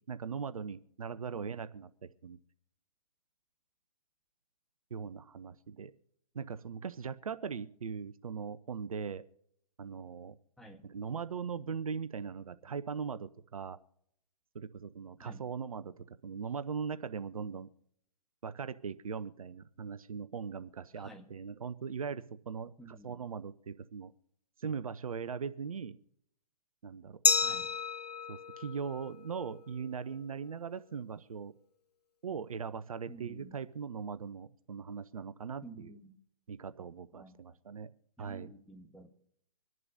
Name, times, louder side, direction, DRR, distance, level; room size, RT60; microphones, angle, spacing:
voice 1, 0.0-2.4 4.9-5.9 6.3-9.2 9.8-10.3 10.8-13.8 14.5-17.7 18.4-24.1 24.6-26.0 26.8-27.2 28.3-31.5 32.2-35.9 36.5-37.9 38.2-38.5, right 6 dB, 65° right, 13 dB, 0.8 m, -40 dB
voice 2, 20.9-21.3 22.8-23.2 27.4-27.7 33.1-33.6 35.6-36.2 37.1-37.4 38.2-39.1, right 2 dB, ahead, 2 dB, 1.3 m, -52 dB
Glass, 27.2-30.0, left 5 dB, 90° left, 0.5 m, -32 dB
25.5 x 11.0 x 2.7 m, 0.70 s
figure-of-eight pair, 130°, 20 cm